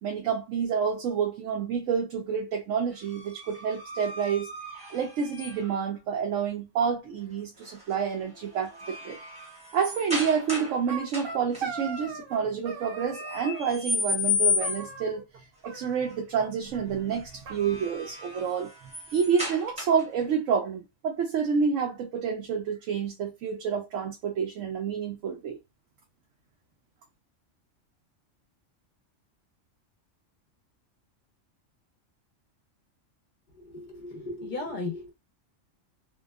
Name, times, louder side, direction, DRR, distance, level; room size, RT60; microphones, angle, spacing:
voice 1, 0.0-4.5 4.9-9.2 9.7-15.2 15.6-18.7 19.1-25.6, right 6 dB, 80° right, 1.0 m, -28 dB
sound 1, 2.9-5.8 7.6-8.0 8.4-10.8 11.1-11.6 13.1-15.0 17.3-20.2, left 4 dB, 5° right, 0.8 m, -33 dB
sound 2, 10.5-12.4 12.7-13.7 14.6-15.4 15.6-16.5 16.7-16.8 17.1-17.2 17.5-18.5, right 5 dB, 55° right, 0.7 m, -39 dB
voice 2, 33.6-35.1, left 2 dB, 45° left, 0.7 m, -36 dB
2.7 x 2.2 x 2.3 m
omnidirectional pair, 1.3 m